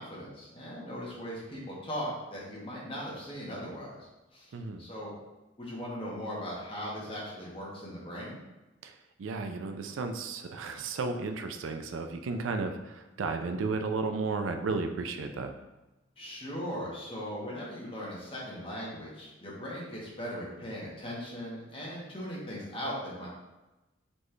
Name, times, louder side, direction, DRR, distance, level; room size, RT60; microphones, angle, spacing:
voice 1, 0.0-5.1 5.6-8.4 16.2-23.3, equal, 30° left, -5 dB, 1.2 m, -39 dB
voice 2, 4.5-4.8 8.8-8.9 9.2-15.5, right 4 dB, 80° right, 6 dB, 0.4 m, -33 dB
4.3 x 3.1 x 3.2 m, 1.0 s
head